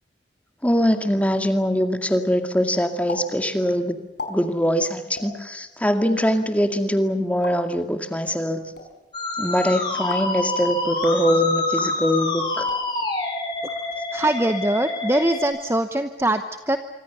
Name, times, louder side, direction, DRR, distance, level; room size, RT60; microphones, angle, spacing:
voice 1, 0.6-4.0 4.3-8.6 9.4-12.7, equal, 10° left, 7 dB, 2.1 m, -22 dB
sound 1, 3.1-3.2 3.5-3.6 4.0-4.3 5.1-5.3 6.0-6.3 7.3-7.5 8.5-8.8 9.9-10.3 10.9-11.2 11.7-11.9 12.6-12.8 13.5-14.2, left 3 dB, 80° left, 5.4 m, -37 dB
Musical instrument, 9.1-15.4, left 3 dB, 25° left, 6.8 m, -27 dB
voice 2, 14.1-16.8, right 1 dB, 15° right, 8 dB, 0.9 m, -22 dB
26.5 x 24.5 x 7.0 m, 1.0 s
head